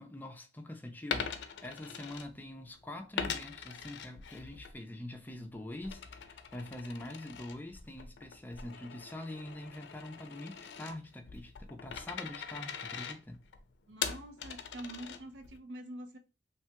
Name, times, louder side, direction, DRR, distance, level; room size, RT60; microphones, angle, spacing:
voice 1, 0.0-13.4, left 1 dB, 10° left, 0.3 m, -44 dB
Coin (dropping), 1.0-2.7 3.2-4.7 5.1-15.6, left 6 dB, 85° left, 0.4 m, -42 dB
voice 2, 13.9-16.2, right 1 dB, 85° right, 0.5 m, -45 dB
3.0 x 2.2 x 2.8 m
head